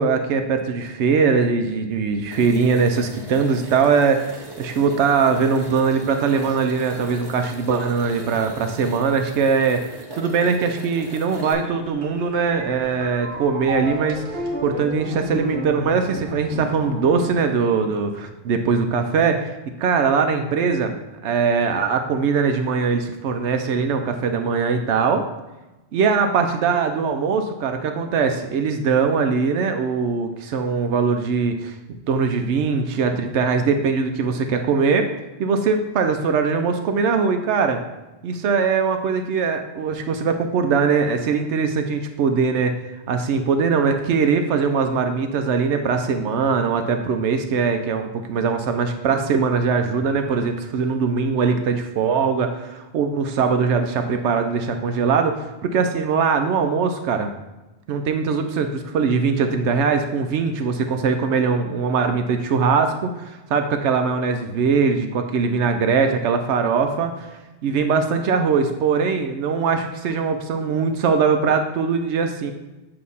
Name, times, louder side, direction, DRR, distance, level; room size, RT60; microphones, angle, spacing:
voice 1, 0.0-19.5 19.8-25.2 25.9-31.8 32.1-35.1 35.4-37.8 38.2-42.8 43.1-57.3 57.9-67.3 67.6-72.5, right 5 dB, 80° right, 6 dB, 0.9 m, -21 dB
sound 1, 2.3-11.5, right 1 dB, 25° right, 0.8 m, -39 dB
sound 2, 11.4-18.1, right 1 dB, 60° right, 1.3 m, -32 dB
8.3 x 2.8 x 5.4 m, 1.1 s
omnidirectional pair, 1.2 m